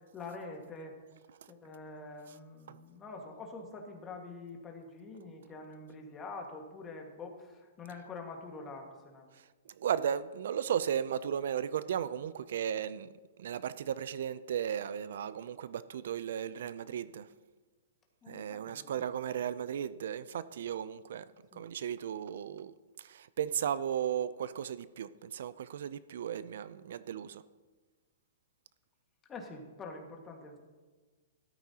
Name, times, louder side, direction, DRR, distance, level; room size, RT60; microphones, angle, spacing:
voice 1, 0.1-1.0 1.5-9.3 18.2-19.1 21.5-21.7 29.3-30.6, left 3 dB, 15° left, 1.6 m, -46 dB
voice 2, 9.8-13.1 13.4-17.3 18.3-27.4, right 9 dB, 70° right, 0.4 m, -35 dB
14.5 x 13.0 x 2.8 m
hypercardioid pair, 155°, 0 cm